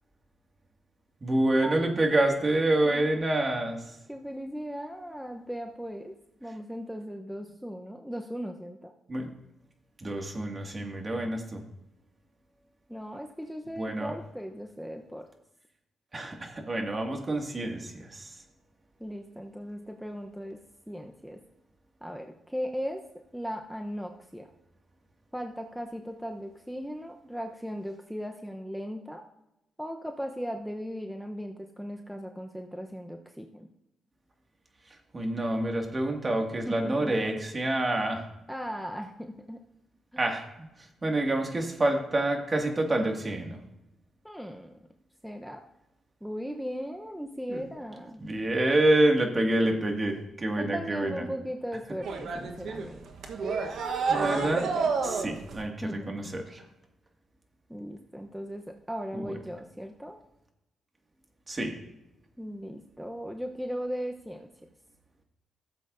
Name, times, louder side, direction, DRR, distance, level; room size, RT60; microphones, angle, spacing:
voice 1, 1.2-3.8 9.1-9.3 10.0-11.6 13.8-14.1 16.1-18.3 35.1-38.3 40.2-40.7 41.0-43.6 47.5-47.6 48.2-51.2 54.1-54.7 55.0-56.6 59.1-59.3 61.5-61.7, right 1 dB, 35° right, 2 dB, 2.1 m, -27 dB
voice 2, 2.7-3.1 4.1-6.1 6.4-8.9 12.9-15.3 19.0-20.6 20.9-21.4 22.0-24.5 25.3-29.2 29.8-33.7 36.7-37.2 38.5-39.6 40.1-40.2 44.2-44.7 45.2-45.6 46.2-48.2 50.6-53.0 55.8-56.3 57.7-60.2 62.4-64.5, equal, ahead, 3 dB, 0.9 m, -37 dB
sound 1, 52.0-55.6, right 5 dB, 70° right, 1.2 m, -30 dB
15.0 x 7.6 x 2.7 m, 0.90 s
supercardioid pair, 50°, 0 cm